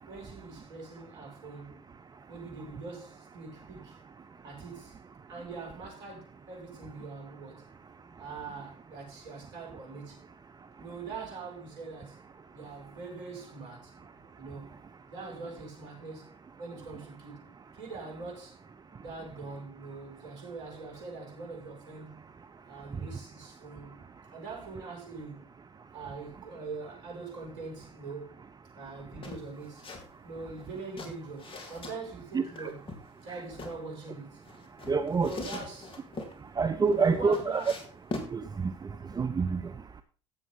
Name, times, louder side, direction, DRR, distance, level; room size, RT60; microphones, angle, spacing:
voice 1, 0.1-1.8 2.3-4.0 4.4-5.0 5.3-7.7 8.2-10.2 10.8-12.2 12.5-13.9 14.4-14.8 15.1-18.5 19.0-22.3 22.7-24.0 24.3-25.4 25.9-28.4 28.7-29.9 30.2-32.8 33.2-34.4 35.0-35.9 36.7-37.8, right 4 dB, 70° right, 6.7 m, -43 dB
sound 1, 29.2-30.1 30.4-32.0 32.6-33.8 34.4-36.4 36.9-38.3, left 2 dB, 35° left, 3.6 m, -41 dB
voice 2, 32.3-32.7 33.3-33.4 34.8-35.3 36.4-37.6 38.2-40.0, right 4 dB, 25° right, 1.0 m, -29 dB
15.5 x 7.8 x 4.0 m
hypercardioid pair, 65°, 15 cm